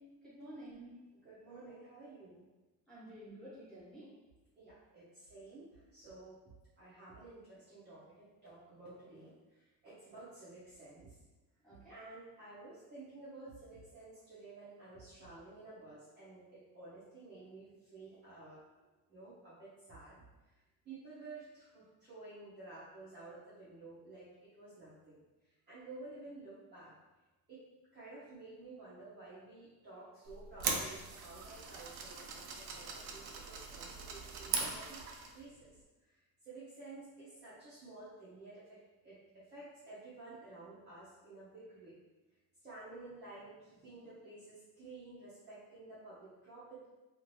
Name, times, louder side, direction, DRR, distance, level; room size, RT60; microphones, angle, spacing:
voice 1, 0.0-1.1 2.9-4.1 11.6-11.9, right 1 dB, ahead, -10 dB, 1.1 m, -51 dB
voice 2, 1.2-2.4 4.6-6.4 6.8-11.2 11.7-18.7 19.1-20.5 20.8-24.3 24.5-25.2 25.7-26.9 27.5-27.6 27.9-35.0 35.3-35.8 36.1-42.0 42.6-46.9, right 3 dB, 25° right, -11 dB, 0.7 m, -52 dB
sound 1, 30.3-35.4, right 5 dB, 70° right, 0.5 m, -40 dB
2.7 x 2.5 x 3.0 m, 1.1 s
cardioid pair, 165°, 40 cm